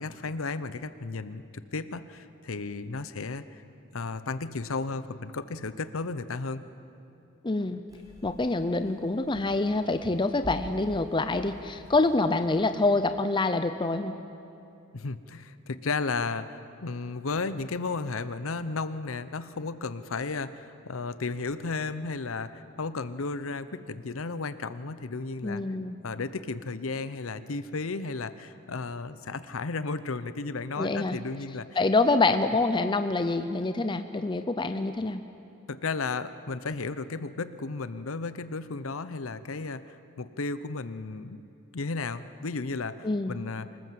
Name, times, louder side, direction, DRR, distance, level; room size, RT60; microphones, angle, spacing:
voice 1, 0.0-3.4 3.9-6.6 14.9-25.6 26.0-31.7 35.7-41.4 41.7-43.7, left 3 dB, 80° left, 13 dB, 0.8 m, -34 dB
voice 2, 7.4-7.8 8.2-14.1 25.4-26.0 30.8-31.2 31.8-35.2 43.0-43.4, left 3 dB, 25° left, 9 dB, 0.6 m, -26 dB
sound 1, 7.9-12.9, equal, 20° right, 4.0 m, -47 dB
26.5 x 19.0 x 7.7 m, 2.7 s
head